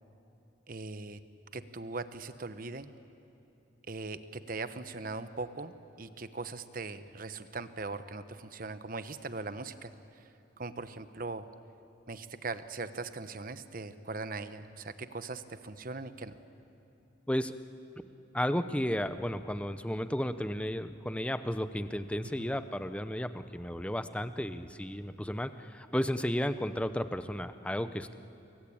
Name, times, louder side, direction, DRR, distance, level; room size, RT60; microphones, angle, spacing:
voice 1, 0.7-1.2 1.5-2.9 3.9-9.9 10.2-10.3 10.6-11.5 12.1-16.3 22.4-22.5, right 3 dB, 45° right, 11 dB, 1.0 m, -40 dB
voice 2, 18.3-28.1, equal, 5° left, 11 dB, 0.7 m, -33 dB
28.0 x 23.0 x 8.7 m, 2.8 s
head